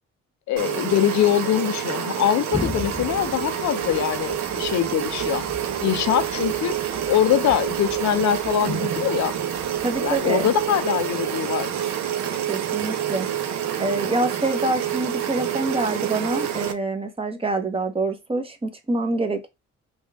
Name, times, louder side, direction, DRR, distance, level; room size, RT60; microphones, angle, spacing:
voice 1, 0.5-5.5 5.8-9.4 10.0-11.7, left 11 dB, 70° left, 0.6 m, -23 dB
sound 1, 0.6-16.7, right 10 dB, 65° right, 0.7 m, -27 dB
Thunder, 2.5-11.9, left 2 dB, 5° left, 0.6 m, -39 dB
voice 2, 9.8-10.5 12.5-13.3 13.8-19.5, right 2 dB, 20° right, 0.9 m, -26 dB
5.3 x 2.4 x 3.4 m
cardioid pair, 90°, 30 cm